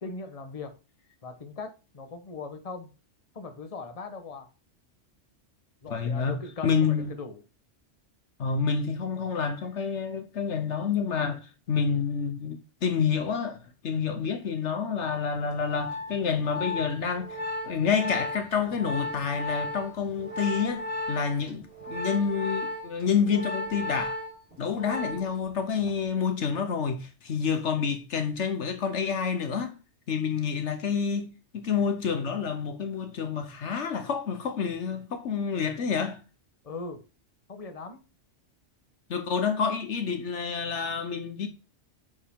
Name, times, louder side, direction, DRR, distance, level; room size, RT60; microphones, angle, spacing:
voice 1, 0.0-0.7 1.2-2.9 3.3-4.5 5.8-7.4 36.6-37.0 37.5-38.0, left 4 dB, 30° left, 1.1 m, -39 dB
voice 2, 5.9-7.1 8.4-17.4 17.7-24.2 24.6-29.8 30.1-36.2 39.1-41.5, left 6 dB, 70° left, 1.2 m, -28 dB
Organ, 15.5-25.5 25.7-26.1, left 1 dB, 40° right, 3.6 m, -35 dB
8.4 x 5.2 x 3.6 m
omnidirectional pair, 1.3 m